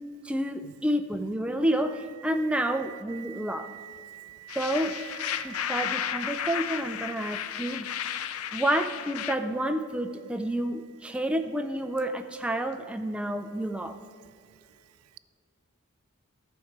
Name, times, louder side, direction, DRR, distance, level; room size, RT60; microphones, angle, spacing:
voice 1, 0.2-3.7 4.6-5.0 5.4-7.9 8.5-14.0, right 1 dB, 5° right, 0.4 m, -29 dB
voice 2, 3.3-4.6 5.3-6.0, right 13 dB, 85° right, 0.4 m, -46 dB
sound 1, 4.5-9.4, left 9 dB, 85° left, 0.5 m, -33 dB
13.5 x 4.6 x 5.9 m
head